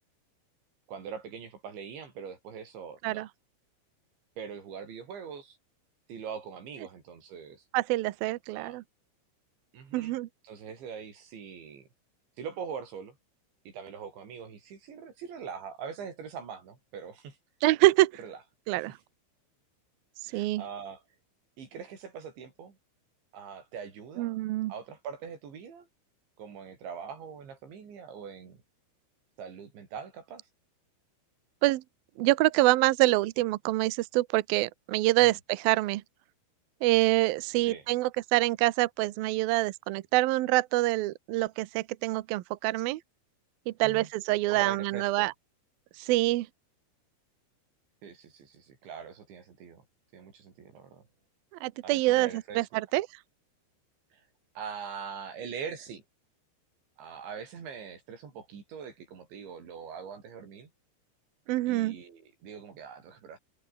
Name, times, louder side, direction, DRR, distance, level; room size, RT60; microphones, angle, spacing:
voice 1, 0.9-3.3 4.4-5.6 6.1-7.6 8.5-8.8 9.7-10.2 10.4-11.9 12.4-13.2 13.7-17.4 18.2-18.4 18.8-19.0 20.3-21.0 21.6-22.8 23.3-24.4 24.7-25.9 26.4-28.6 29.4-30.4 35.2-35.4 37.7-37.9 43.8-44.1 44.5-45.3 48.0-49.9 50.1-51.1 51.8-52.8 54.1-54.2 54.6-56.0 57.0-60.7 61.7-63.4, right 6 dB, 70° right, 7.2 m, -42 dB
voice 2, 7.7-8.8 9.9-10.3 17.6-18.1 18.7-18.9 20.3-20.6 24.2-24.7 31.6-31.8 32.2-36.0 36.8-43.0 43.7-45.3 46.0-46.5 51.6-52.3 52.6-53.1 61.5-62.0, right 18 dB, 85° right, 2.1 m, -26 dB
omnidirectional pair, 5.6 m